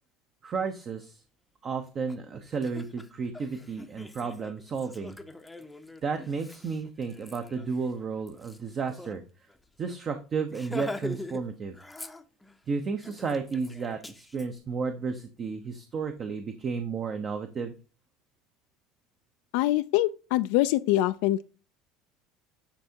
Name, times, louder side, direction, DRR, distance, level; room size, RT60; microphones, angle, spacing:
voice 1, 0.4-1.2 1.6-5.2 6.0-9.2 9.8-11.7 12.7-17.7, right 5 dB, 35° right, 0.8 m, -32 dB
Laughter, 2.1-2.2 2.5-9.2 9.5-9.6 9.9-10.1 10.5-11.4 11.7-12.6 13.0-14.5, left 1 dB, 5° left, 0.7 m, -43 dB
voice 2, 19.5-21.4, left 15 dB, 75° left, 0.3 m, -24 dB
10.0 x 3.5 x 2.8 m
supercardioid pair, 115°, 0 cm